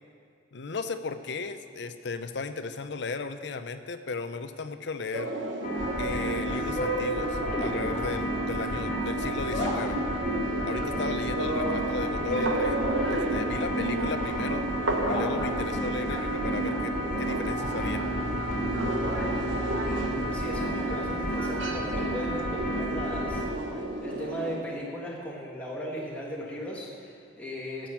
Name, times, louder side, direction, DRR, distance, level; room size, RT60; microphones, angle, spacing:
voice 1, 0.5-5.3 6.0-10.0 10.6-12.8 13.1-14.6 15.0-18.0, left 4 dB, 65° left, 10 dB, 0.6 m, -36 dB
sound 1, 5.1-24.6, right 1 dB, 85° right, 1.1 m, -32 dB
sound 2, 5.6-23.4, equal, 40° left, 2.4 m, -31 dB
sound 3, 17.6-21.5, equal, 35° right, 2.1 m, -39 dB
voice 2, 19.9-27.9, equal, 10° left, -4 dB, 1.6 m, -37 dB
11.5 x 7.7 x 7.2 m, 2.4 s
head